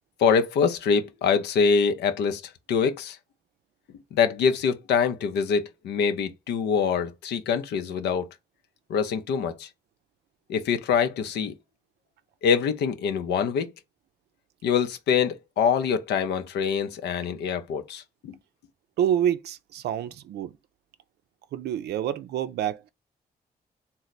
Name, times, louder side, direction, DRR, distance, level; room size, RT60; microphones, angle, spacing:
voice 1, 0.2-2.4 2.7-3.2 4.1-8.2 8.9-9.7 10.5-11.5 12.4-13.7 14.6-18.3, left 6 dB, 85° left, 0.5 m, -24 dB
voice 2, 19.0-20.5 21.5-22.9, right 10 dB, 80° right, 0.4 m, -27 dB
3.2 x 2.1 x 3.9 m
supercardioid pair, 60°, 17 cm